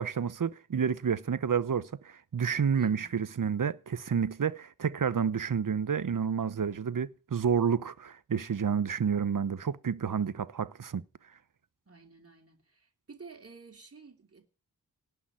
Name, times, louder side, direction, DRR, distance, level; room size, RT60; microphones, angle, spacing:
voice 1, 0.0-11.0, right 7 dB, 55° right, 1.0 m, -30 dB
voice 2, 2.8-3.1 11.9-14.5, right 4 dB, 35° right, 3.0 m, -51 dB
18.0 x 7.0 x 10.0 m
wide cardioid pair, 85°, 38 cm